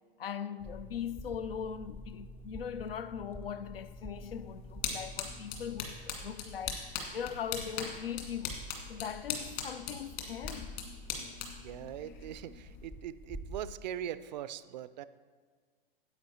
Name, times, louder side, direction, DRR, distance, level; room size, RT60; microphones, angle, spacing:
voice 1, 0.2-8.6 8.9-10.8, left 8 dB, 75° left, 0.6 m, -40 dB
sound 1, 0.6-13.8, equal, 10° left, 0.4 m, -48 dB
sound 2, 4.2-12.9, left 6 dB, 50° left, 2.1 m, -41 dB
voice 2, 11.6-15.0, right 10 dB, 50° right, 0.5 m, -41 dB
10.0 x 8.2 x 4.4 m
hypercardioid pair, 115°, 29 cm